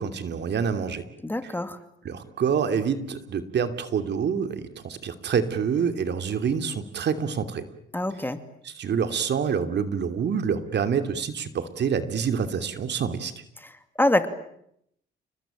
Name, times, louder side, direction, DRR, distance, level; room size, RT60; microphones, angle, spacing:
voice 1, 0.0-1.0 1.4-1.5 2.0-7.7 8.6-13.3, right 7 dB, 60° right, 9 dB, 2.9 m, -27 dB
voice 2, 1.2-1.8 7.9-8.4 14.0-14.3, left 1 dB, 10° left, 9 dB, 2.7 m, -24 dB
30.0 x 20.5 x 9.0 m, 0.73 s
cardioid pair, 90°, 20 cm